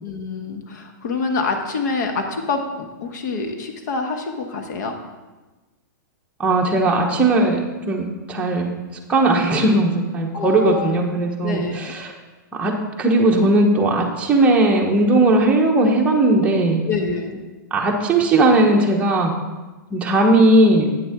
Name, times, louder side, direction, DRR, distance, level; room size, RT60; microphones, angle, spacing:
voice 1, 0.0-4.9 10.3-11.0 11.4-11.9 16.9-17.4, left 3 dB, 60° left, 5 dB, 1.2 m, -26 dB
voice 2, 6.4-7.6 7.9-8.7 9.1-12.1 12.5-12.7 13.0-16.8 17.7-19.3 19.9-20.9, right 2 dB, 10° right, -1 dB, 1.0 m, -17 dB
8.5 x 6.9 x 3.7 m, 1.2 s
hypercardioid pair, 140°, 11 cm